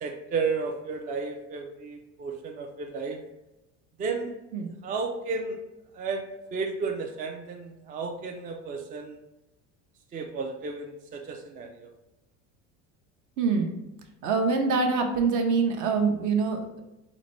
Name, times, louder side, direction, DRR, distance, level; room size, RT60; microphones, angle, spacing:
voice 1, 0.0-3.2 4.0-4.3 4.8-5.6 5.9-9.2 10.1-11.9, right 4 dB, 25° right, 3 dB, 0.3 m, -33 dB
voice 2, 13.4-13.8 14.2-16.8, right 4 dB, 55° right, 4 dB, 0.7 m, -25 dB
3.9 x 2.2 x 3.1 m, 0.96 s
supercardioid pair, 85°, 37 cm